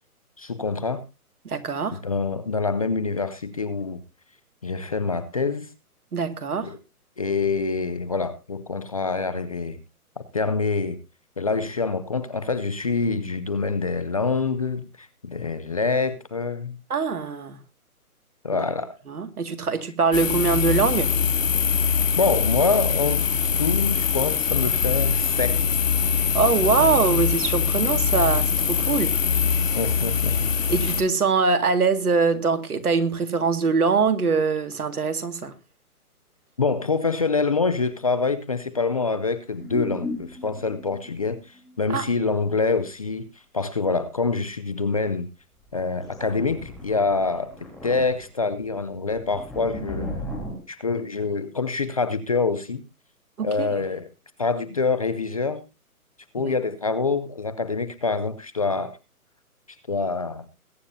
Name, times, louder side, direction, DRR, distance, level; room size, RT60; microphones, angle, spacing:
voice 1, 0.4-1.0 1.9-4.0 4.6-5.7 6.6-6.7 7.2-9.8 10.2-11.0 11.4-16.8 18.4-18.9 22.1-23.3 23.6-25.8 29.7-30.5 36.6-41.4 41.8-43.2 43.5-45.3 45.7-50.1 50.7-52.8 53.4-54.1 54.4-55.6 56.3-58.9 59.9-60.5, left 4 dB, 25° left, 0.5 m, -26 dB
voice 2, 1.4-2.0 6.1-6.7 16.9-17.6 18.5-18.6 19.1-21.1 26.3-29.1 30.7-35.5 41.9-42.1 53.4-53.7 56.4-56.5, right 5 dB, 75° right, 2.2 m, -23 dB
sound 1, 20.1-31.0, left 6 dB, 60° left, 2.0 m, -23 dB
sound 2, 39.5-41.9 42.1-42.2 45.6-50.6, left 1 dB, ahead, 3.4 m, -36 dB
21.5 x 9.2 x 2.7 m
hypercardioid pair, 150°, 45 cm